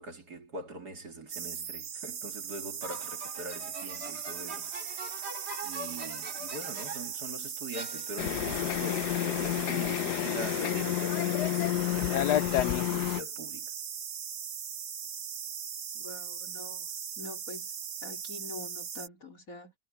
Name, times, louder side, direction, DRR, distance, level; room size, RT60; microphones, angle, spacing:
voice 1, 0.0-5.3 5.6-13.7, right 2 dB, 60° right, 3.6 m, -43 dB
sound 1, 1.3-19.1, right 7 dB, 75° right, 2.0 m, -39 dB
sound 2, 2.8-7.2 7.7-8.5, right 2 dB, 35° right, 2.6 m, -43 dB
sound 3, 8.2-13.2, left 14 dB, 75° left, 1.1 m, -29 dB
voice 2, 15.9-16.9 17.2-17.7 18.0-19.7, left 2 dB, 50° left, 4.1 m, -45 dB
omnidirectional pair, 1.9 m